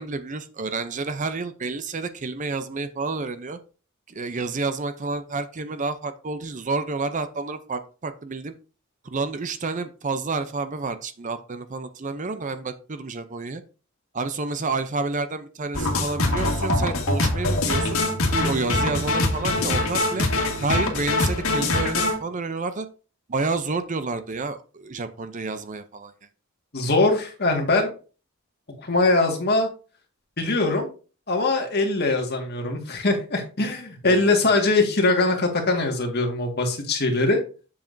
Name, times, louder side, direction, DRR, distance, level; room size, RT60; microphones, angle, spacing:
voice 1, 0.0-3.6 4.1-8.5 9.0-13.6 14.1-18.0 18.3-20.3 20.6-22.9 23.3-26.1 34.0-34.6, right 3 dB, 35° right, 11 dB, 0.6 m, -29 dB
sound 1, 15.7-22.2, left 2 dB, 80° left, 1.8 m, -23 dB
voice 2, 26.7-27.9 28.8-29.7 30.4-30.9 31.3-37.4, left 2 dB, 50° left, 2 dB, 1.9 m, -22 dB
7.4 x 7.4 x 2.7 m, 0.35 s
head